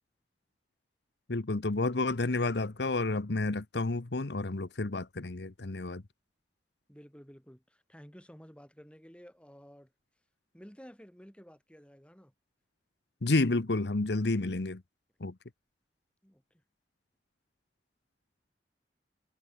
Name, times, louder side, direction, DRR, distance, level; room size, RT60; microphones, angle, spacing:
voice 1, 1.3-6.0 13.2-14.8 15.2-15.3, left 2 dB, 70° left, 1.0 m, -30 dB
voice 2, 6.9-9.9 10.5-12.3 16.2-16.6, equal, 5° left, 5.8 m, -53 dB
head